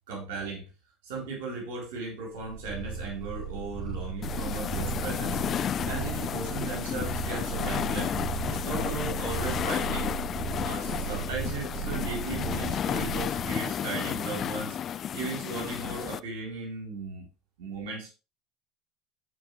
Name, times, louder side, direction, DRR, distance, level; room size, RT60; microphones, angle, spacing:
voice 1, 0.1-0.7 1.0-5.4 5.9-8.2 8.5-10.1 10.6-14.8 15.1-17.3 17.6-18.1, right 3 dB, 75° right, -1 dB, 3.7 m, -36 dB
Purr, 2.4-13.7, right 5 dB, 30° right, 3.0 m, -36 dB
sound 1, 4.2-16.2, left 9 dB, 45° left, 0.3 m, -32 dB
13.0 x 5.1 x 3.2 m, 0.30 s
hypercardioid pair, 80°, 0 cm